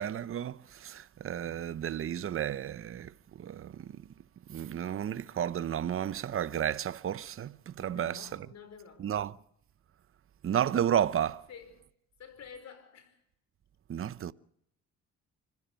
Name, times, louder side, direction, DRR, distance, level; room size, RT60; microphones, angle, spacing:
voice 1, 0.0-4.0 4.5-8.3 9.0-9.3 10.4-11.5 13.9-14.3, right 9 dB, 45° right, 0.8 m, -32 dB
voice 2, 7.7-9.2 11.5-11.8 12.2-13.2, left 6 dB, 60° left, 5.2 m, -51 dB
26.0 x 15.5 x 7.0 m
cardioid pair, 90°, 30 cm